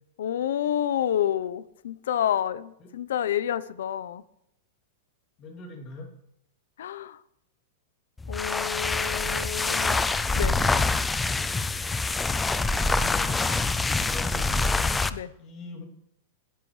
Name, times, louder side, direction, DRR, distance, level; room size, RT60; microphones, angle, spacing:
voice 1, 0.2-4.2 6.8-7.2 8.3-10.0 10.3-10.6 15.1-15.3, left 10 dB, 75° left, 16 dB, 0.9 m, -29 dB
voice 2, 5.4-6.1 12.8-13.4 13.9-14.5 15.4-15.8, left 3 dB, 25° left, 0 dB, 3.0 m, -42 dB
sound 1, 8.2-15.2, left 3 dB, 5° left, 0.4 m, -25 dB
20.0 x 12.5 x 3.4 m, 0.77 s
supercardioid pair, 175°, 0 cm